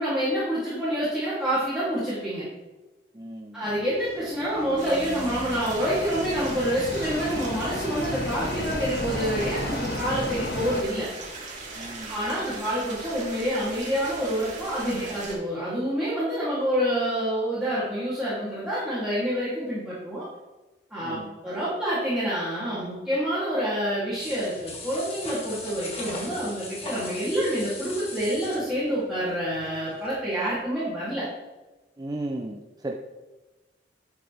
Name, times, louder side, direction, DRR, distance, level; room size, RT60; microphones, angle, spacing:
voice 1, 0.0-2.4 3.5-11.1 12.1-20.3 20.9-31.3, equal, 5° right, -11 dB, 3.0 m, -27 dB
voice 2, 3.1-3.6 11.7-12.7 21.0-21.3 32.0-32.9, right 1 dB, 20° right, 2 dB, 0.6 m, -36 dB
sound 1, 4.0-10.8, left 2 dB, 60° left, 1.0 m, -33 dB
sound 2, 4.8-15.3, right 3 dB, 45° right, 2.6 m, -39 dB
sound 3, 24.1-30.1 30.5-30.6, left 3 dB, 35° left, 2.1 m, -39 dB
11.0 x 8.2 x 3.5 m, 1.1 s
head